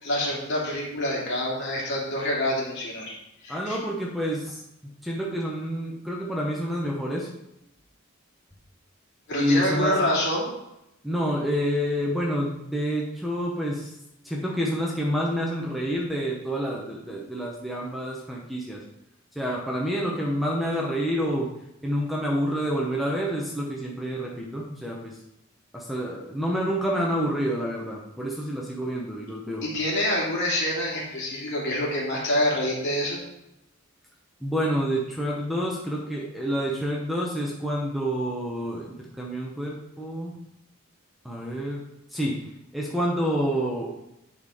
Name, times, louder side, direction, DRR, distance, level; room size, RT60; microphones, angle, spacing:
voice 1, 0.0-3.1 3.4-3.8 9.3-10.5 29.6-33.2, left 1 dB, 55° left, -3 dB, 2.7 m, -26 dB
voice 2, 3.5-4.6 5.0-7.3 9.4-10.0 11.0-13.9 14.2-18.8 19.3-21.5 21.8-25.2 25.7-29.7 34.4-40.3 41.2-41.8 42.1-42.4 42.7-43.9, equal, ahead, -2 dB, 0.9 m, -28 dB
10.5 x 4.3 x 5.0 m, 0.87 s
head